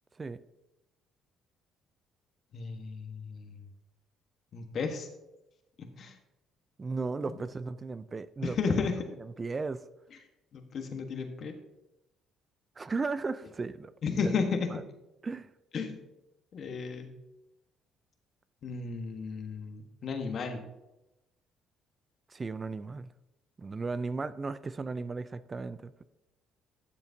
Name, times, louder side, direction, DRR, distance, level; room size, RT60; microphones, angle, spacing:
voice 1, 2.5-3.6 4.5-5.1 5.8-6.2 7.3-7.4 8.4-9.0 10.5-11.5 14.0-14.7 15.7-16.0 16.5-17.1 18.6-20.7, left 5 dB, 55° left, 1.3 m, -33 dB
voice 2, 6.8-8.6 9.4-9.8 12.8-13.9 14.2-14.3 15.2-15.5 22.3-23.1 23.6-26.0, right 4 dB, 30° right, 0.4 m, -35 dB
12.0 x 7.0 x 2.8 m
hypercardioid pair, 60°, 0 cm